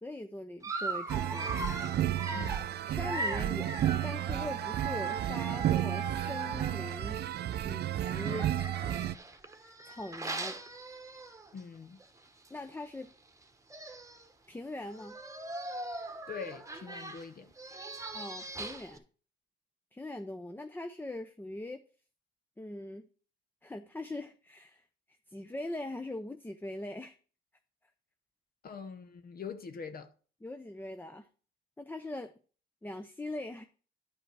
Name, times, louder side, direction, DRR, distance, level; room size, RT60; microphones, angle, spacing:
voice 1, 0.0-1.5 2.8-7.2 7.6-8.5 9.8-10.6 12.5-13.1 14.5-15.2 18.1-19.0 19.9-21.8 22.6-23.1 23.6-24.8 25.3-27.2 30.4-31.3 31.8-32.3 32.8-33.6, left 1 dB, 10° left, 0.6 m, -41 dB
Dog, 0.6-7.2 8.0-11.6 12.0-12.2 12.5-12.6 13.4-13.5 13.7-14.3 14.9-19.0, right 3 dB, 15° right, 1.1 m, -40 dB
sound 1, 1.1-9.2, right 12 dB, 55° right, 0.4 m, -32 dB
voice 2, 2.3-2.7 11.5-12.0 16.3-17.5 28.6-30.1, left 6 dB, 50° left, 0.8 m, -43 dB
10.5 x 5.4 x 4.6 m
cardioid pair, 90°, 20 cm